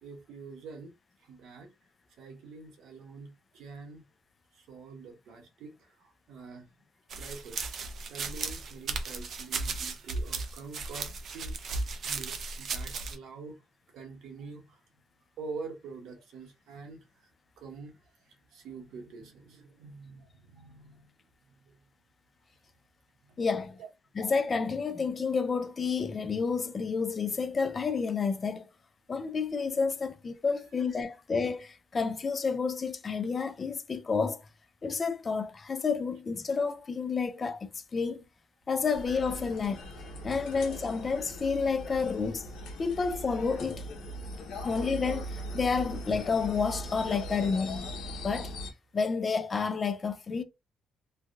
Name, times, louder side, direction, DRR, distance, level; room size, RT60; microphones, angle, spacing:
voice 1, 0.0-0.9 1.2-1.7 2.2-4.0 4.5-6.7 7.1-7.7 8.1-11.8 12.0-13.6 13.9-14.8 15.4-17.3 17.6-21.1 21.5-21.8 23.2-23.4 23.8-23.9, right 4 dB, 80° right, 1.0 m, -46 dB
sound 1, 7.1-13.2, right 4 dB, 55° right, 0.5 m, -35 dB
voice 2, 23.4-23.8 24.2-28.7 29.1-34.4 34.8-38.2 38.7-39.8 40.2-42.4 42.8-43.9 44.6-47.9 48.2-48.5 48.9-50.4, left 5 dB, 30° left, 0.4 m, -30 dB
sound 2, 38.9-48.7, equal, 80° left, 0.8 m, -40 dB
3.2 x 2.3 x 2.5 m
cardioid pair, 130°, 0 cm